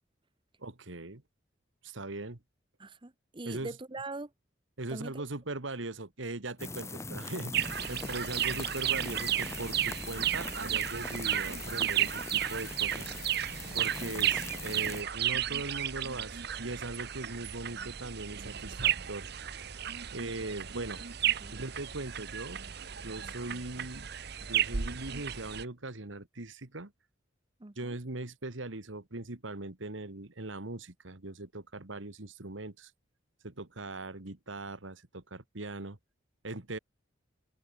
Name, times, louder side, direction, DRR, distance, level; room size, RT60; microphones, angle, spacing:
voice 1, 0.6-1.2 1.8-2.4 3.4-3.7 4.8-13.1 13.7-19.3 20.1-21.0 21.5-22.6 23.0-24.1 24.4-26.9 27.8-32.9 33.4-36.0 36.4-36.8, right 2 dB, 80° right, 2.0 m, -40 dB
voice 2, 2.8-4.3 4.9-5.2 7.9-8.0 14.0-14.3 21.4-21.6 23.0-23.1 27.6-28.0, right 2 dB, 25° right, 0.9 m, -43 dB
sound 1, 6.6-15.0, left 3 dB, 15° left, 1.0 m, -41 dB
sound 2, 7.5-25.7, right 11 dB, 55° right, 1.1 m, -33 dB
head